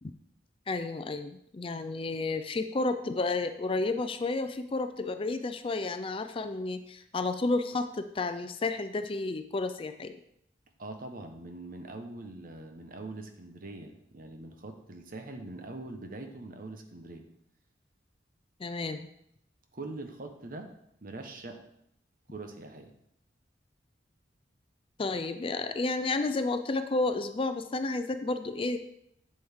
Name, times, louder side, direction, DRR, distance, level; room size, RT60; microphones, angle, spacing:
voice 1, 0.7-10.2 18.6-19.1 25.0-28.8, left 3 dB, 30° left, 9 dB, 0.4 m, -31 dB
voice 2, 10.8-17.3 19.7-20.7 21.0-21.6 22.3-22.9, right 2 dB, 50° right, 5 dB, 1.0 m, -43 dB
7.8 x 7.8 x 3.6 m, 0.74 s
head